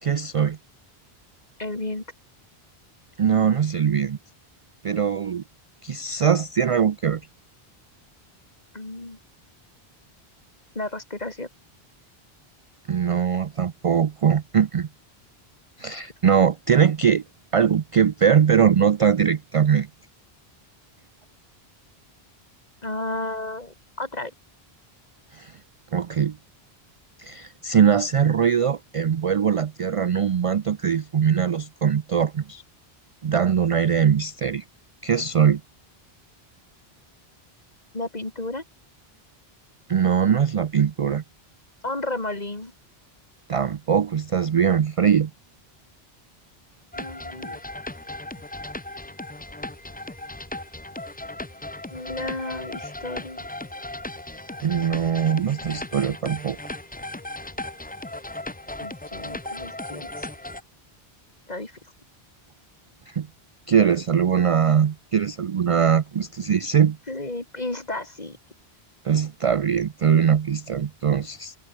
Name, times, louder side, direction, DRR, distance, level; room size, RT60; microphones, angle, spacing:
voice 1, 0.0-0.6 3.2-4.2 4.8-5.4 5.8-7.2 12.9-14.9 15.8-17.2 17.5-19.9 25.3-25.5 25.9-26.4 27.2-32.6 33.2-34.6 35.0-35.6 39.9-41.2 43.5-45.3 54.6-56.6 63.1-63.3 63.7-67.0 69.0-71.6, right 7 dB, 50° right, 0.4 m, -21 dB
voice 2, 1.6-2.0 8.7-9.2 10.7-11.5 22.8-24.3 37.9-38.6 41.8-42.7 46.9-47.6 51.9-53.4 58.8-60.3 61.5-61.8 67.1-68.4, left 2 dB, 40° left, 3.1 m, -32 dB
sound 1, 46.9-60.6, left 2 dB, 10° left, 0.6 m, -36 dB
omnidirectional pair, 1.0 m